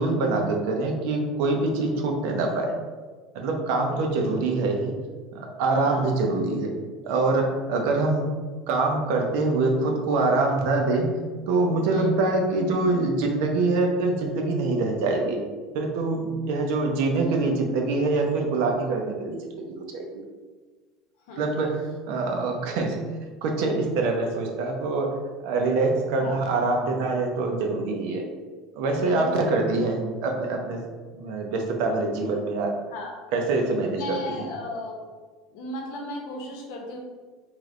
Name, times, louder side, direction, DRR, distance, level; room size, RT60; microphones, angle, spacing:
voice 1, 0.0-2.7 3.3-5.0 5.3-6.7 7.0-8.3 8.7-11.1 11.5-15.4 15.7-19.4 19.7-20.2 21.4-23.0 23.4-25.1 25.4-28.2 28.8-30.9 31.1-32.8 33.3-34.4, right 3 dB, 65° right, 2 dB, 0.7 m, -24 dB
voice 2, 1.7-2.1 3.8-4.4 5.9-6.1 11.9-12.2 21.3-21.4 26.2-26.4 29.0-29.5 32.9-33.2 33.9-35.0 35.5-37.0, left 2 dB, 75° left, 1 dB, 0.9 m, -36 dB
3.2 x 3.1 x 3.8 m, 1.4 s
cardioid pair, 180°, 0 cm